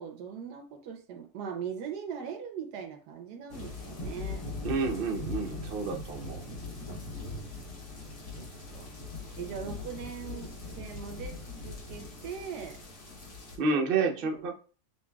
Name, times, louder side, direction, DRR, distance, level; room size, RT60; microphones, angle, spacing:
voice 1, 0.0-4.5 5.8-5.9 6.6-7.3 8.3-8.9 9.4-12.8 14.2-14.3, right 7 dB, 90° right, 6 dB, 1.3 m, -41 dB
sound 1, 3.5-13.6, left 3 dB, 70° left, 1.7 m, -40 dB
voice 2, 4.6-6.4 13.6-14.6, right 4 dB, 50° right, 2 dB, 0.6 m, -29 dB
6.9 x 2.6 x 2.2 m, 0.37 s
omnidirectional pair, 1.7 m